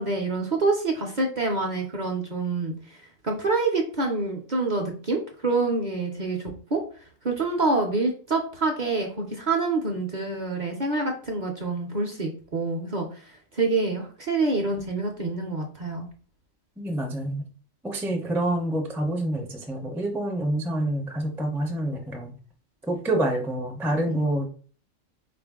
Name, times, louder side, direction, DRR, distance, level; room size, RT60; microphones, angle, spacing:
voice 1, 0.0-6.4 6.7-6.8 7.2-13.2 13.5-16.1 24.1-24.2, right 3 dB, 45° right, 2 dB, 0.7 m, -26 dB
voice 2, 16.8-17.5 17.8-22.3 22.8-24.5, right 1 dB, 5° right, 2 dB, 0.4 m, -27 dB
4.4 x 2.5 x 3.5 m, 0.42 s
omnidirectional pair, 1.3 m